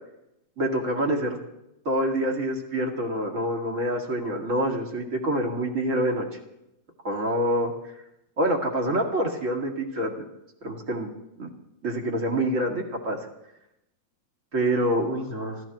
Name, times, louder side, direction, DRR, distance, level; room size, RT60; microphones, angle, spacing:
voice 1, 0.6-1.4 1.8-6.2 7.0-7.7 8.4-10.2 10.6-11.1 11.4-11.5 11.8-13.2 14.5-15.6, right 1 dB, 30° right, 1 dB, 1.6 m, -26 dB
28.5 x 15.0 x 3.0 m, 0.85 s
omnidirectional pair, 4.7 m